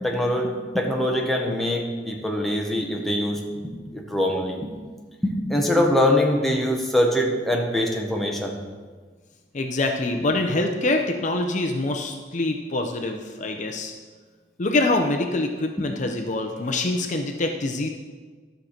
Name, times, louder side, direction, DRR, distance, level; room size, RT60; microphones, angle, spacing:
voice 1, 0.0-0.5 0.7-4.7 5.5-8.5, left 1 dB, ahead, 0 dB, 1.2 m, -23 dB
voice 2, 9.5-13.9 14.6-17.9, left 2 dB, 45° left, 4 dB, 0.6 m, -25 dB
12.5 x 6.6 x 4.4 m, 1.5 s
head